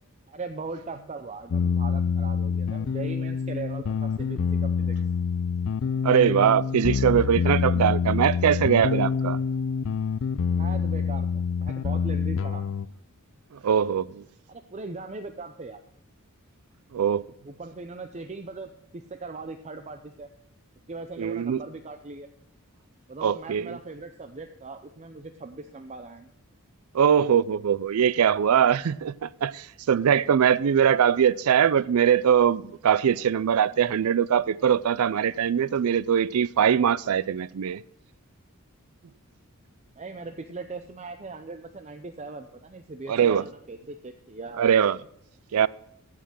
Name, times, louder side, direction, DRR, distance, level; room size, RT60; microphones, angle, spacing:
voice 1, 0.3-5.0 10.5-12.6 14.5-15.8 17.4-20.3 20.9-22.3 23.1-26.3 40.0-44.7, right 3 dB, 30° right, 0.6 m, -39 dB
sound 1, 1.5-12.9, left 6 dB, 65° left, 0.4 m, -26 dB
voice 2, 6.0-9.4 13.6-14.2 16.9-17.2 21.2-21.6 23.2-23.8 26.9-37.8 43.1-43.4 44.6-45.0 45.5-45.7, right 8 dB, 85° right, 0.4 m, -22 dB
15.0 x 5.8 x 6.2 m
head